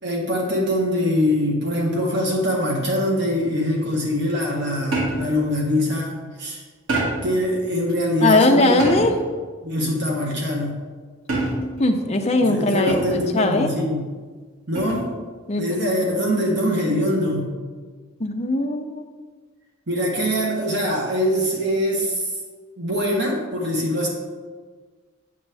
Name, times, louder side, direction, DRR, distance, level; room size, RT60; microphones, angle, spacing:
voice 1, 0.0-6.6 7.2-9.0 9.6-10.8 12.4-14.0 14.7-15.1 15.6-17.5 19.9-22.3 22.8-24.1, equal, 55° right, -1 dB, 1.2 m, -23 dB
sound 1, 4.9-5.4 6.9-7.4 8.8-9.3 11.3-11.9 12.9-13.3 14.8-15.1, right 2 dB, 80° right, 2.2 m, -26 dB
voice 2, 8.2-9.1 11.8-13.7 15.5-15.6 18.2-19.0, left 2 dB, 30° left, 4 dB, 0.7 m, -19 dB
8.6 x 7.1 x 3.4 m, 1.5 s
head